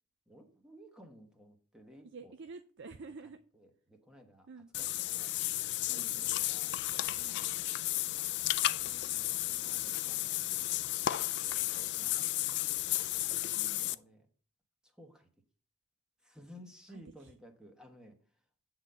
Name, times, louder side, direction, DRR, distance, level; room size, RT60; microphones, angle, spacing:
voice 1, 0.3-2.3 3.5-4.5 4.8-5.3 5.9-6.7 7.1-7.6 8.7-10.8 11.2-13.1 13.8-14.3 14.8-15.3 16.2-18.2, equal, 5° right, 3 dB, 1.2 m, -57 dB
voice 2, 2.0-3.4 4.5-4.7 5.9-6.2 7.2-7.4 13.6-13.9 16.9-17.3, right 4 dB, 50° right, 9 dB, 0.5 m, -50 dB
Water / Bathtub (filling or washing), 4.7-13.9, left 15 dB, 50° left, 0.3 m, -33 dB
9.0 x 3.8 x 6.7 m, 0.43 s
head